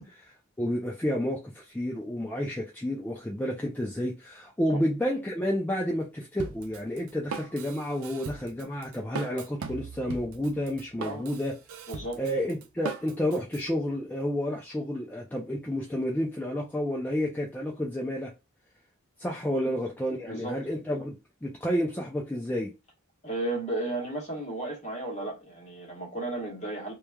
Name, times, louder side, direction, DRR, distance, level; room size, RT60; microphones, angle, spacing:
voice 1, 0.6-11.5 12.2-18.3 19.2-22.7, equal, 10° left, 0.3 m, -30 dB
Drum kit, 6.4-13.6, right 5 dB, 70° right, 0.4 m, -39 dB
voice 2, 11.0-11.4 11.9-12.2 19.5-19.7 20.2-20.6 23.2-26.9, right 2 dB, 35° left, 1.1 m, -34 dB
3.0 x 2.3 x 2.2 m
head